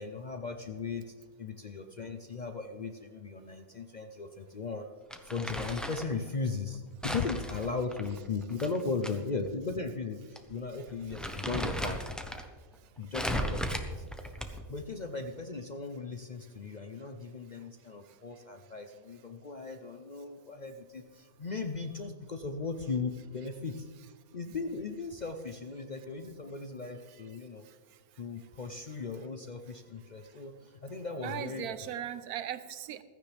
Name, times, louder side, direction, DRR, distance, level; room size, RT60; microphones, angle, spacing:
voice 1, 0.0-4.9 5.2-12.0 13.0-14.0 14.7-23.9 24.3-27.6 28.2-31.8, left 4 dB, 50° left, 6 dB, 0.5 m, -37 dB
Crumpling crinkling, 5.1-6.1 7.0-9.1 9.5-9.6 10.4-10.5 10.9-12.4 13.1-14.7, equal, ahead, 0.6 m, -36 dB
voice 2, 27.6-28.0 29.7-29.8 30.2-30.4 31.2-33.0, right 10 dB, 85° right, 13 dB, 1.2 m, -40 dB
15.5 x 14.0 x 3.4 m, 1.5 s
omnidirectional pair, 1.5 m